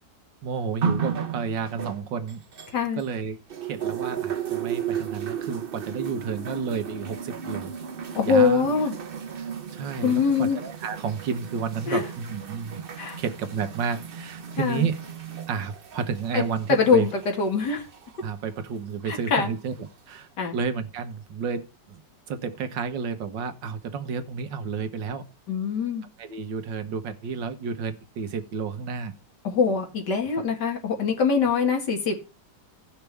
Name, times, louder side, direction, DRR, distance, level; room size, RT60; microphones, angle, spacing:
voice 1, 0.4-2.4 3.0-7.7 8.2-8.7 9.4-12.8 13.2-15.0 15.5-17.1 18.2-19.7 20.1-22.0 22.3-25.2 26.2-29.1 30.4-30.5, right 6 dB, 85° right, 9 dB, 1.8 m, -31 dB
sound 1, 0.8-3.2 3.5-18.2 19.1-19.2, right 7 dB, 45° right, 0.7 m, -34 dB
voice 2, 8.1-8.9 10.0-10.6 11.9-12.0 13.0-13.2 14.6-14.9 16.3-16.4 16.7-17.1 17.4-17.8 19.1-19.5 20.4-20.6 25.5-26.0 29.4-32.2, left 5 dB, 70° left, 2 dB, 2.4 m, -23 dB
17.0 x 5.9 x 3.4 m, 0.30 s
omnidirectional pair, 1.9 m